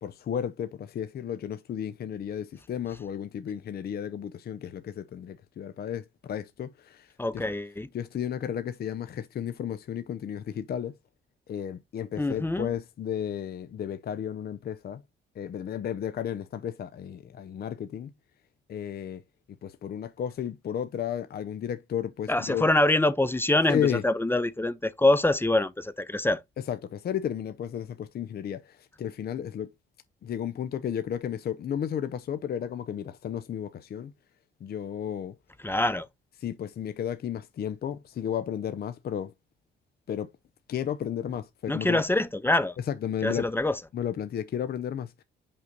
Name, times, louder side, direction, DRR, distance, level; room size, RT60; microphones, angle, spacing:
voice 1, 0.0-7.4 7.9-10.9 11.5-15.0 15.4-18.1 18.7-19.2 19.6-22.7 23.7-24.0 26.7-29.7 30.2-34.1 34.6-35.3 36.4-39.3 40.1-40.3 40.7-42.0 43.0-43.4 43.9-45.2, left 9 dB, 50° left, 0.6 m, -33 dB
voice 2, 7.2-7.9 12.2-12.7 22.3-26.4 35.6-36.1 41.7-42.8 43.2-43.8, left 1 dB, 10° left, 0.6 m, -25 dB
5.5 x 5.1 x 3.8 m
cardioid pair, 90°, 20 cm